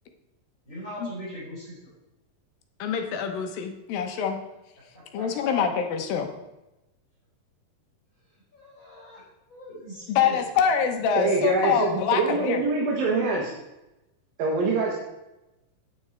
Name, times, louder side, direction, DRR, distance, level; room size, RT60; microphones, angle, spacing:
voice 1, 0.7-1.9 4.9-5.8 8.5-9.2 9.5-10.3 10.6-10.7, equal, 35° left, -8 dB, 5.3 m, -40 dB
voice 2, 2.8-4.4 5.1-6.3 10.1-12.6, left 7 dB, 85° left, 5 dB, 2.8 m, -25 dB
voice 3, 11.2-13.5 14.4-14.9, right 3 dB, 80° right, -3 dB, 3.3 m, -24 dB
9.8 x 8.9 x 4.6 m, 0.96 s
omnidirectional pair, 4.1 m